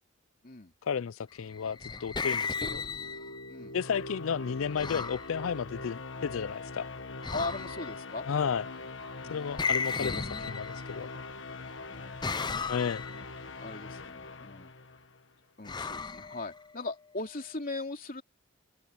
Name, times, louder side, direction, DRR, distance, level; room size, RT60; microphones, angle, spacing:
voice 1, 0.8-2.8 3.7-6.9 8.3-8.7 9.3-11.1 12.7-13.0, left 6 dB, 80° left, 0.4 m, -33 dB
sound 1, 1.5-3.5 4.8-5.3 7.2-8.0 9.6-11.1 12.2-13.2 15.7-16.9, left 5 dB, 20° left, 0.6 m, -35 dB
sound 2, 2.2-15.3, left 3 dB, 65° left, 1.4 m, -43 dB
voice 2, 7.3-8.3 9.2-9.9 11.9-12.7 13.1-13.2 13.6-14.7 15.6-18.2, left 2 dB, 45° left, 3.2 m, -39 dB
head